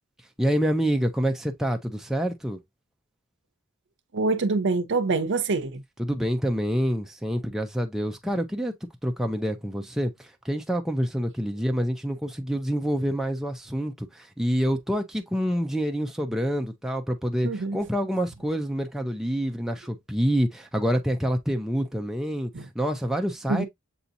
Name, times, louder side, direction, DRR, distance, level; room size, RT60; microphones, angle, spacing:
voice 1, 0.4-2.6 6.0-8.7 9.0-22.5 22.8-23.6, equal, ahead, 0.5 m, -27 dB
voice 2, 4.1-5.8 17.4-17.8 22.5-22.7 23.5-23.7, right 3 dB, 60° right, 0.7 m, -25 dB
6.9 x 2.8 x 2.5 m
head